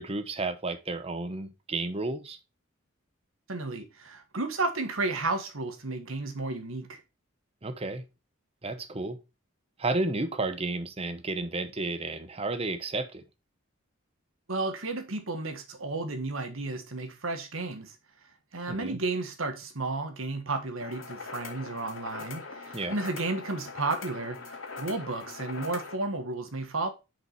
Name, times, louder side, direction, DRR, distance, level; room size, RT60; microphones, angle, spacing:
voice 1, 0.0-2.4 7.6-8.0 8.6-9.2 9.8-13.2 18.7-19.0 22.7-22.9, right 2 dB, 30° right, 0.8 m, -32 dB
voice 2, 3.5-7.0 14.5-17.9 18.5-26.9, right 3 dB, 80° right, 1.5 m, -33 dB
sound 1, 20.8-26.0, left 4 dB, 75° left, 2.0 m, -41 dB
6.6 x 5.2 x 4.3 m
head